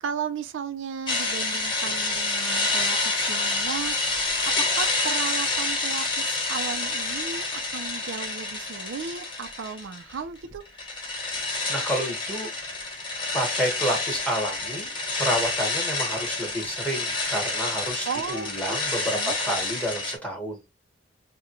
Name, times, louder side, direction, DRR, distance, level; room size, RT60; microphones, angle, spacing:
voice 1, 0.0-10.6 18.1-18.8 19.1-19.4, right 6 dB, 80° right, 0.4 m, -35 dB
sound 1, 1.1-10.2 10.4-20.2, left 3 dB, 25° left, 0.9 m, -28 dB
voice 2, 11.7-12.5 13.3-20.6, equal, 5° left, 1.2 m, -30 dB
3.6 x 2.1 x 2.9 m
head